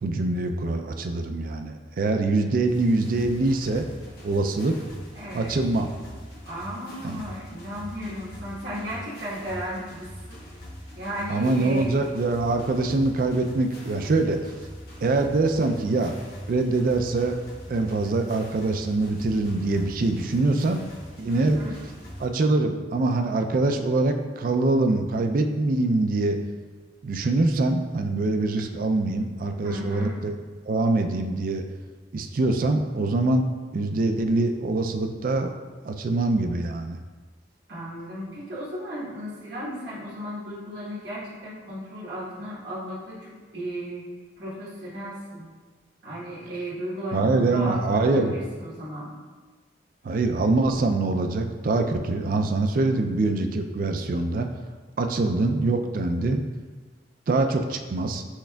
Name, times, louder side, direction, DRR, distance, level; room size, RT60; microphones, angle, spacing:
voice 1, 0.0-3.8 4.2-4.8 5.3-5.9 7.0-7.2 11.3-14.4 15.0-16.2 16.5-17.4 17.7-20.8 21.2-21.6 22.2-26.4 27.0-30.3 30.7-31.6 32.1-33.5 33.7-35.5 35.8-37.0 47.1-48.3 50.0-54.5 55.0-56.4 57.3-58.2, right 2 dB, 50° right, 5 dB, 0.4 m, -24 dB
sound 1, 2.7-22.3, equal, 55° left, 1.0 m, -42 dB
voice 2, 5.1-5.6 6.4-10.4 10.9-12.0 21.3-21.8 29.6-30.2 37.7-44.1 44.4-45.4 46.0-49.1, equal, 75° right, -7 dB, 1.2 m, -35 dB
6.3 x 3.5 x 2.3 m, 1.4 s
head